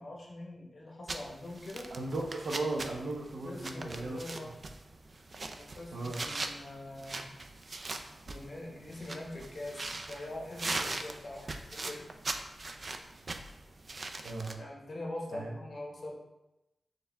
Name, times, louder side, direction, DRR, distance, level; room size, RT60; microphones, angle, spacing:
voice 1, 0.0-1.9 3.4-4.5 5.6-7.3 8.2-12.1 14.6-16.1, left 1 dB, 50° left, -1 dB, 1.0 m, -43 dB
sound 1, 1.1-14.5, right 2 dB, 45° right, 0.3 m, -41 dB
voice 2, 1.9-4.5 5.9-6.2 14.2-14.6 15.3-15.5, right 2 dB, 75° right, 1 dB, 0.7 m, -37 dB
4.5 x 3.2 x 3.4 m, 0.95 s
wide cardioid pair, 110°, 0 cm